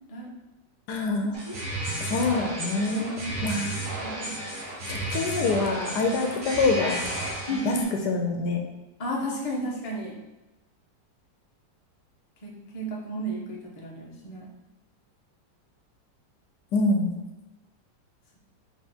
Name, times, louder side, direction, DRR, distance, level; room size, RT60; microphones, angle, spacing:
voice 1, 0.9-1.4 2.0-3.7 4.9-7.0 7.6-7.8 8.1-8.6 16.7-17.1, left 3 dB, 70° left, 3 dB, 1.1 m, -25 dB
sound 1, 1.3-7.8, right 1 dB, 40° right, 0.7 m, -33 dB
voice 2, 4.0-4.7 7.5-7.8 9.0-10.1 12.4-14.5, equal, 50° left, -3 dB, 0.4 m, -33 dB
3.5 x 3.0 x 4.2 m, 1.0 s
omnidirectional pair, 2.0 m